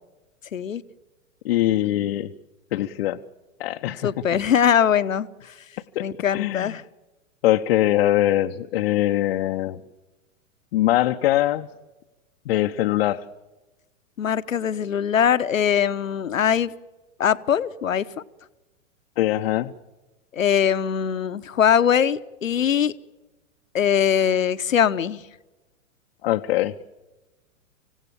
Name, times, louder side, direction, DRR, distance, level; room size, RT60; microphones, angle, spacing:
voice 1, 1.4-2.3 2.7-3.2 3.6-4.1 5.9-6.0 6.3-6.8 7.4-9.8 10.7-11.7 12.5-13.2 19.2-19.7 26.2-26.7, left 14 dB, 45° left, 4 dB, 0.8 m, -22 dB
voice 2, 4.0-5.3 6.0-6.8 14.2-16.7 17.2-18.0 20.3-22.9 23.7-25.2, left 8 dB, 70° left, 14 dB, 1.0 m, -21 dB
26.0 x 16.5 x 8.5 m, 1.1 s
figure-of-eight pair, 105°, 41 cm